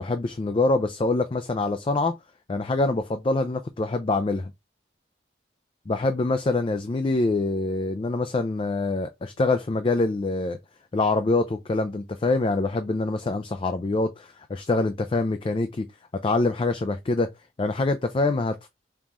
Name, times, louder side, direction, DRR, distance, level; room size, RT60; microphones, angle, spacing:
voice 1, 0.0-2.2 2.5-4.5 5.9-10.6 10.9-15.9 16.2-17.3 17.6-18.7, left 2 dB, 30° left, 0.3 m, -25 dB
5.4 x 3.0 x 2.4 m
head